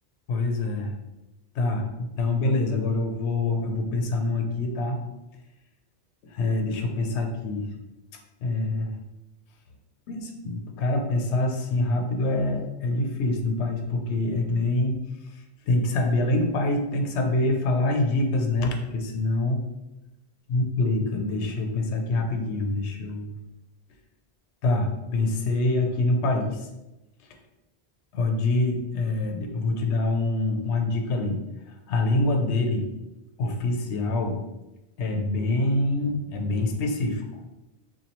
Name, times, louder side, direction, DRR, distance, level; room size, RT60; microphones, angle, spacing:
voice 1, 0.3-0.9 1.5-5.0 6.2-7.7 8.4-9.0 10.1-15.0 15.2-19.6 20.5-23.3 24.6-26.7 28.1-31.4 31.7-32.9 33.4-34.4 35.0-37.2, left 2 dB, 85° left, 3 dB, 0.9 m, -25 dB
7.0 x 2.3 x 3.0 m, 0.97 s
omnidirectional pair, 1.1 m